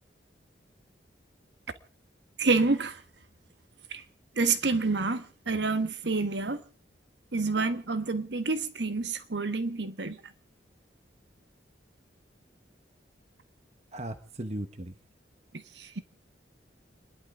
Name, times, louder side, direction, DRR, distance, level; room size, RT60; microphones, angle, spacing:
voice 1, 2.4-3.0 3.9-4.0 4.3-6.6 7.3-10.2 15.5-16.0, right 3 dB, 75° right, 1.3 m, -28 dB
voice 2, 13.9-15.0, right 1 dB, 35° right, 1.1 m, -37 dB
30.0 x 11.5 x 3.8 m
head